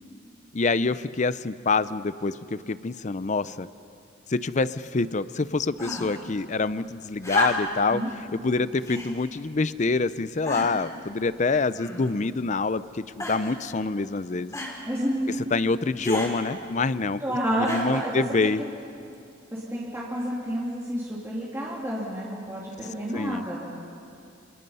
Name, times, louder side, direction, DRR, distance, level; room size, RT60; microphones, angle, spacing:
voice 1, 0.5-3.7 4.3-8.0 8.3-14.6 15.5-18.6 23.1-23.4, left 3 dB, 40° left, 15 dB, 0.5 m, -26 dB
sound 1, 5.8-6.3 7.2-7.9 8.8-9.2 9.9-10.0 10.4-10.9 11.7-12.3 13.2-13.6 14.5-14.8 16.0-16.3 17.6-18.1 19.1-19.2, left 1 dB, 15° left, 3.6 m, -31 dB
voice 2, 14.9-15.4 17.2-18.5 19.5-23.6, equal, 15° right, -6 dB, 2.8 m, -29 dB
27.5 x 27.0 x 5.6 m, 2.5 s
head